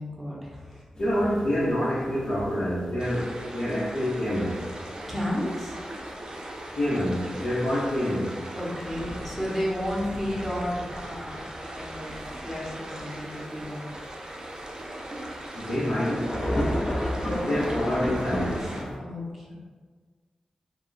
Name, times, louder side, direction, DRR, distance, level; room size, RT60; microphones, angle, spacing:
voice 1, 0.0-0.8 5.0-5.8 8.5-11.4 11.7-13.9 16.5-17.2 18.6-19.5, left 1 dB, ahead, -5 dB, 0.8 m, -33 dB
sound 1, 0.9-19.0, left 1 dB, 35° left, 0.6 m, -36 dB
voice 2, 1.0-4.6 6.8-8.4 15.5-16.4 17.2-18.7, equal, 75° left, -11 dB, 0.7 m, -27 dB
sound 2, 3.0-18.8, right 1 dB, 40° right, 0.5 m, -40 dB
2.2 x 2.1 x 3.8 m, 1.5 s
cardioid pair, 60°, 2 cm